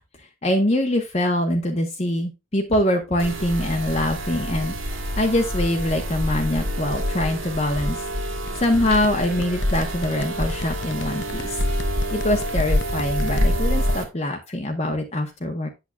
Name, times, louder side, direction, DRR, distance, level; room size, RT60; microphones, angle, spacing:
voice 1, 0.4-4.7 5.2-8.0 8.2-8.3 8.6-11.6 12.1-15.7, left 1 dB, 30° left, 3 dB, 0.9 m, -24 dB
sound 1, 3.2-14.0, equal, 75° right, 2.2 m, -26 dB
sound 2, 8.5-13.4, left 4 dB, 55° left, 0.6 m, -37 dB
8.4 x 7.7 x 2.2 m, 0.25 s
head